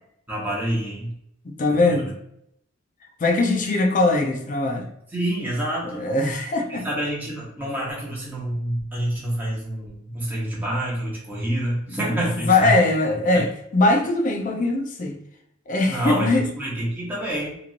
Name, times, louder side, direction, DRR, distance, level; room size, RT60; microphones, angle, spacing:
voice 1, 0.3-1.1 1.7-2.1 5.1-6.0 6.7-12.7 13.3-13.4 15.9-16.3 16.6-17.6, right 1 dB, 10° right, 1.0 m, -27 dB
voice 2, 1.4-2.1 3.2-4.9 5.9-6.9 12.1-15.2 15.7-16.5, left 2 dB, 40° left, 0.5 m, -21 dB
3.0 x 2.6 x 2.5 m
head